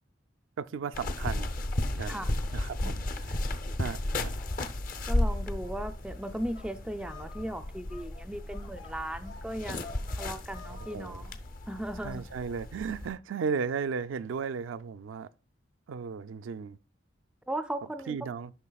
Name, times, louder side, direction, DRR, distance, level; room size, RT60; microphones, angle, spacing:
voice 1, 0.6-1.5 1.8-2.2 2.5-3.0 3.5-4.3 10.9-11.2 12.0-15.3 15.9-16.8 18.1-18.5, right 6 dB, 80° right, 0.4 m, -35 dB
sound 1, 0.9-13.1, left 1 dB, 45° left, 0.6 m, -34 dB
sound 2, 4.3-11.1, left 4 dB, 85° left, 2.1 m, -51 dB
voice 2, 5.1-11.3 11.7-12.2 17.5-18.2, right 1 dB, 5° right, 0.4 m, -37 dB
12.5 x 5.7 x 2.3 m
head